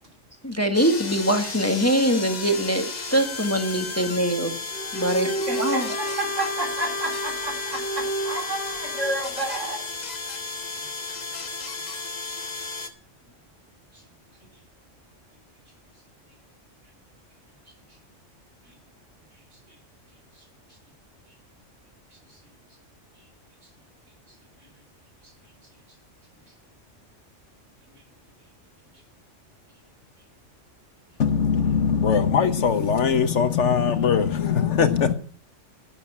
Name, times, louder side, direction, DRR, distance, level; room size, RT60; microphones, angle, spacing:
voice 1, 0.4-4.5 4.9-5.3 5.6-5.9, equal, 10° left, 1.3 m, -23 dB
sound 1, 0.7-12.9, left 3 dB, 35° left, 1.2 m, -34 dB
Bowed string instrument, 4.7-9.2, equal, 55° left, 1.8 m, -31 dB
voice 2, 5.5-9.8 10.7-10.9 11.3-11.4 13.9-14.0 18.6-18.7 19.7-19.8 20.4-20.5 22.3-22.4 27.9-28.0, right 1 dB, 80° right, 3.9 m, -31 dB
voice 3, 31.2-35.1, left 7 dB, 70° left, 1.4 m, -21 dB
11.5 x 9.1 x 5.9 m
omnidirectional pair, 1.3 m